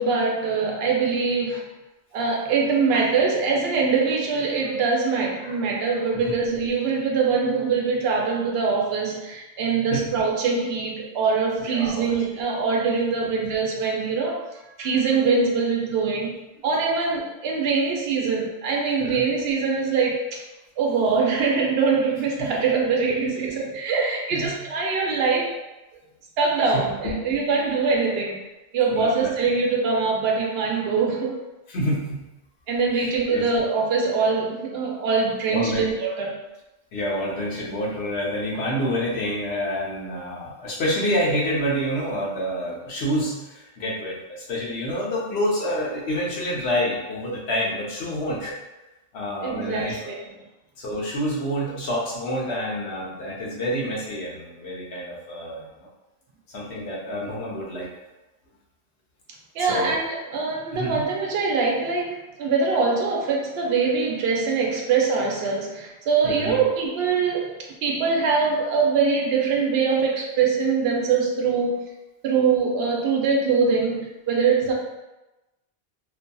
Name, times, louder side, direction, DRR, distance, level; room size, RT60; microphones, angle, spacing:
voice 1, 0.0-1.6 2.1-14.4 14.8-16.3 16.6-20.4 20.8-25.5 26.4-28.4 28.7-31.4 32.7-36.4 49.4-50.2 59.5-71.8 72.2-74.7, right 4 dB, 70° right, 0 dB, 0.8 m, -23 dB
voice 2, 11.7-12.1 13.2-13.3 19.0-19.2 22.4-22.5 24.3-24.5 26.7-27.1 27.4-27.5 28.9-29.3 31.7-32.2 33.0-33.4 35.5-35.9 36.9-48.5 49.1-50.1 50.8-55.9 56.5-57.9 59.6-60.0 60.7-61.1 66.2-66.6, equal, 70° left, -4 dB, 1.0 m, -28 dB
2.6 x 2.6 x 2.2 m, 1.0 s
omnidirectional pair, 1.1 m